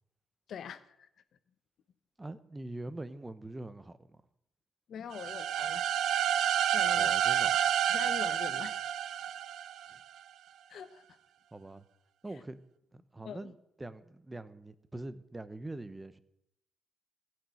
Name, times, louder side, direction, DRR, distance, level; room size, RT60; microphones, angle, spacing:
voice 1, 0.5-1.1 4.9-5.8 6.7-7.1 7.9-8.8 10.7-11.0 13.2-13.5, left 8 dB, 65° left, 12 dB, 1.0 m, -43 dB
voice 2, 2.2-4.2 6.9-7.6 9.9-10.0 11.5-11.8 12.2-12.6 12.9-16.2, right 2 dB, 15° right, 13 dB, 0.9 m, -43 dB
sound 1, 5.1-10.0, right 10 dB, 75° right, 0.4 m, -29 dB
15.0 x 6.4 x 8.5 m, 0.81 s
cardioid pair, 90°, 0 cm